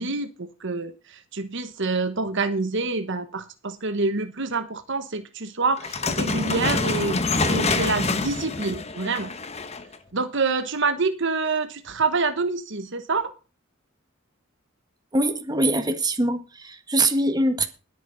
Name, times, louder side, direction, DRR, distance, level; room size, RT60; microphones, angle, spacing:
voice 1, 0.0-7.2 7.4-9.3 10.1-13.3, right 3 dB, 60° right, 1.3 m, -27 dB
sound 1, 5.8-10.0, left 3 dB, 30° left, 1.2 m, -26 dB
voice 2, 15.1-17.7, right 1 dB, 20° right, 1.8 m, -23 dB
20.0 x 9.3 x 4.1 m
head